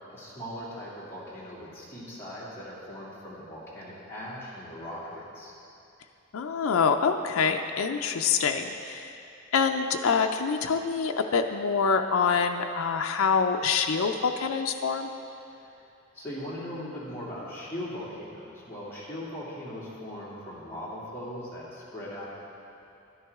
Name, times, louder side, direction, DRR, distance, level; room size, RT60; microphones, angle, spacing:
voice 1, 0.1-5.5 15.6-15.7 16.1-22.3, equal, 10° left, -9 dB, 2.4 m, -39 dB
voice 2, 6.3-9.1 9.5-15.1, left 5 dB, 85° left, 5 dB, 0.5 m, -25 dB
11.5 x 10.5 x 3.6 m, 2.7 s
head